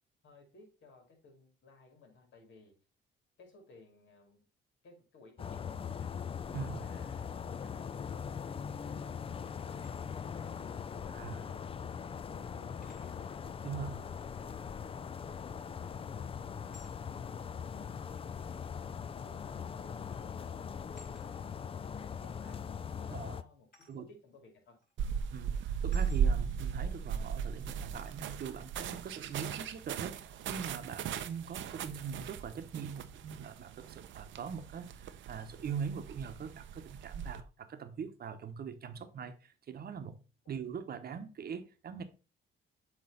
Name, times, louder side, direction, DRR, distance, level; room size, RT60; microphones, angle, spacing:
voice 1, 0.2-2.8 3.4-4.5 4.8-6.1 6.7-11.9 12.3-13.4 14.0-22.6 23.0-24.8 40.4-40.5, left 3 dB, 70° left, 2.3 m, -60 dB
sound 1, 5.4-23.4, left 7 dB, 30° left, 0.4 m, -41 dB
voice 2, 6.5-6.9 11.1-11.4 13.6-14.0 23.1-23.4 23.9-24.1 25.3-40.2 40.5-42.0, right 6 dB, 50° right, 0.9 m, -42 dB
sound 2, 9.6-10.0 11.6-11.7 12.8-13.3 15.5-15.8 16.7-17.0 18.2-18.3 19.5-19.7 20.0-20.3 20.9-21.3 23.7-24.0 24.8-24.9 25.9-26.3, left 3 dB, 45° left, 3.8 m, -59 dB
sound 3, 25.0-37.4, right 7 dB, 70° right, 0.6 m, -37 dB
7.8 x 3.1 x 4.0 m
cardioid pair, 90°, 20 cm